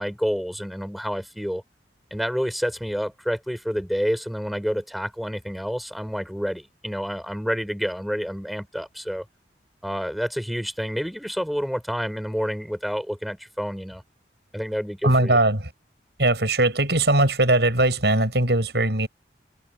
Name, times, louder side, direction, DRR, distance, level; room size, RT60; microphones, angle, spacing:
voice 1, 0.0-1.6 2.1-9.2 9.8-14.0 14.5-15.4, equal, ahead, 6.7 m, -28 dB
voice 2, 15.0-15.7 16.2-19.1, right 2 dB, 70° right, 8.0 m, -20 dB
open air
head